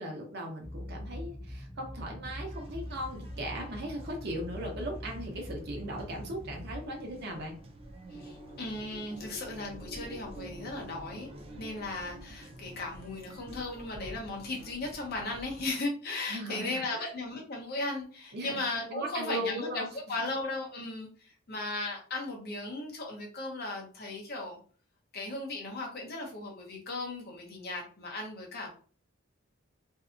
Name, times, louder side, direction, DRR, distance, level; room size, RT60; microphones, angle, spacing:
voice 1, 0.0-7.5 16.3-17.1 18.3-18.6 18.9-19.9 20.2-20.3, right 1 dB, 55° right, 1 dB, 0.8 m, -38 dB
sound 1, 0.6-6.8, equal, 10° left, 0.6 m, -43 dB
sound 2, 2.2-15.7, right 1 dB, 30° right, 0.4 m, -48 dB
voice 2, 8.1-11.3 11.6-24.6 25.1-28.7, left 2 dB, 50° left, 1 dB, 0.8 m, -37 dB
2.6 x 2.2 x 2.5 m, 0.42 s
head